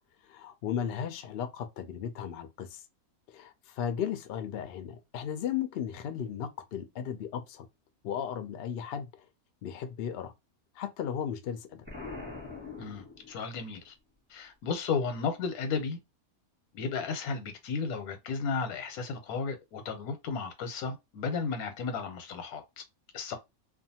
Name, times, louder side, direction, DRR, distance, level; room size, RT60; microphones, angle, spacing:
voice 1, 0.3-2.8 3.3-7.7 8.0-9.1 9.6-10.3 10.8-11.8, left 8 dB, 65° left, 0.6 m, -35 dB
Explosion, 11.9-13.7, left 3 dB, 10° right, 0.8 m, -43 dB
voice 2, 12.8-13.9 14.3-16.0 16.7-22.8 23.1-23.4, left 5 dB, 90° left, 1.2 m, -34 dB
2.5 x 2.3 x 2.7 m
omnidirectional pair, 1.5 m